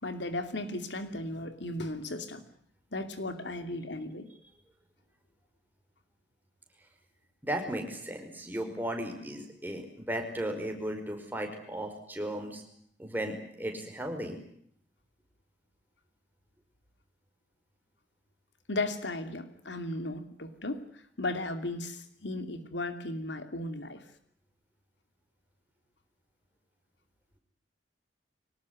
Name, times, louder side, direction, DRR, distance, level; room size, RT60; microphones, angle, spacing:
voice 1, 0.0-2.4 2.9-4.3 18.7-24.0, left 2 dB, 75° left, 9 dB, 2.7 m, -36 dB
voice 2, 7.4-12.6 13.0-14.4, right 1 dB, 10° right, 4 dB, 5.4 m, -35 dB
24.0 x 19.5 x 9.5 m, 0.66 s
head